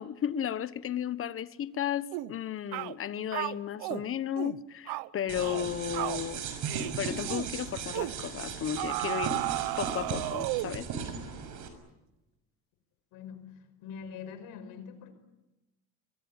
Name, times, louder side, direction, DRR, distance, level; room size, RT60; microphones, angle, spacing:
voice 1, 0.0-6.4 7.0-9.4 9.8-10.9, left 10 dB, 35° left, 1.2 m, -34 dB
sound 1, 2.1-2.3 2.7-3.0 3.3-4.0 4.4-4.6 4.9-5.1 5.4-5.7 5.9-6.2 6.7-7.0 7.3-7.5 7.9-8.2 8.8-10.8, right 19 dB, 75° right, 1.0 m, -34 dB
sound 2, 5.3-11.7, right 6 dB, 55° right, 6.2 m, -37 dB
voice 2, 13.1-13.5 13.8-15.1, left 6 dB, 75° left, 5.5 m, -43 dB
25.0 x 23.5 x 9.1 m
cardioid pair, 130°, 36 cm